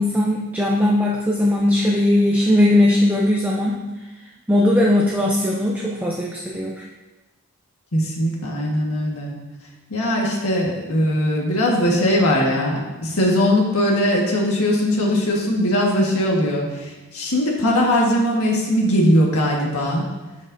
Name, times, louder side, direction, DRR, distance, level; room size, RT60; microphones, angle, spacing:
voice 1, 0.0-3.9 4.5-6.8, left 1 dB, 10° right, -2 dB, 0.5 m, -19 dB
voice 2, 7.9-9.3 9.9-20.0, equal, 75° left, -2 dB, 1.6 m, -20 dB
13.0 x 5.3 x 2.7 m, 1.2 s
head